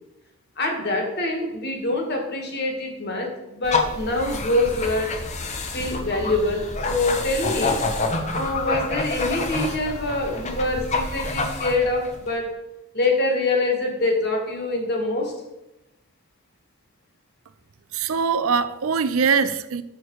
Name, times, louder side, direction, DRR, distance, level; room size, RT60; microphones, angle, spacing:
voice 1, 0.6-5.2 5.7-7.8 8.3-12.5 12.9-15.3, left 2 dB, 50° left, 1.6 m, -25 dB
sound 1, 3.6-12.3, left 3 dB, 30° left, 0.8 m, -28 dB
voice 2, 17.9-19.8, right 5 dB, 70° right, 0.4 m, -22 dB
6.6 x 6.1 x 4.7 m
head